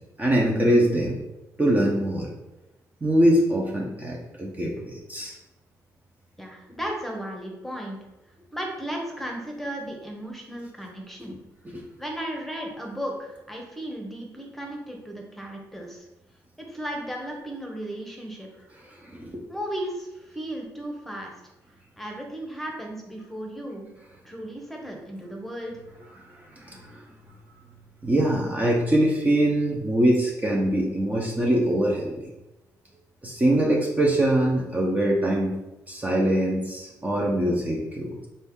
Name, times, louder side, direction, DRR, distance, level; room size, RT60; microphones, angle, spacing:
voice 1, 0.2-1.2 1.6-2.3 3.0-5.3 11.3-11.4 11.7-11.8 19.0-19.4 26.3-27.0 28.0-32.3 33.2-35.5 35.9-38.3, right 1 dB, 20° right, -2 dB, 0.7 m, -23 dB
voice 2, 6.4-8.0 8.5-11.4 12.0-16.1 16.6-18.5 19.5-21.3 22.0-23.9 24.2-25.8, right 1 dB, 5° left, 0 dB, 1.0 m, -35 dB
4.2 x 2.7 x 3.6 m, 0.97 s
cardioid pair, 90°, 7 cm